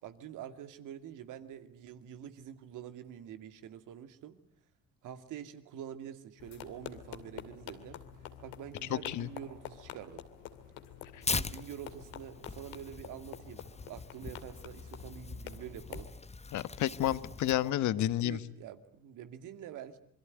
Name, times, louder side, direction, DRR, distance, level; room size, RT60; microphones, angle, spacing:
voice 1, 0.0-4.3 5.0-8.0 8.4-10.2 11.3-16.1 17.0-17.5 18.2-20.0, right 10 dB, 70° right, 9 dB, 2.4 m, -46 dB
sound 1, 6.4-16.1, left 10 dB, 75° left, 2.6 m, -48 dB
voice 2, 8.9-9.3 11.1-11.2 16.5-18.4, left 13 dB, 60° left, 16 dB, 1.2 m, -31 dB
Tearing, 11.2-17.7, left 4 dB, 20° left, 1.1 m, -41 dB
27.0 x 22.5 x 9.5 m, 0.66 s
hypercardioid pair, 55°, 32 cm